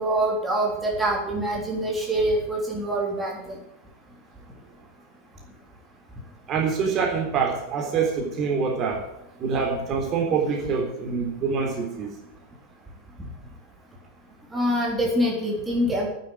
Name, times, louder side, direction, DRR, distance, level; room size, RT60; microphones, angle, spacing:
voice 1, 0.0-3.3 14.5-16.1, right 1 dB, 10° right, -3 dB, 3.4 m, -25 dB
voice 2, 6.5-9.0 9.4-12.1, right 5 dB, 35° right, 0 dB, 3.7 m, -25 dB
10.0 x 8.5 x 9.9 m, 0.83 s
figure-of-eight pair, 90°, 0 cm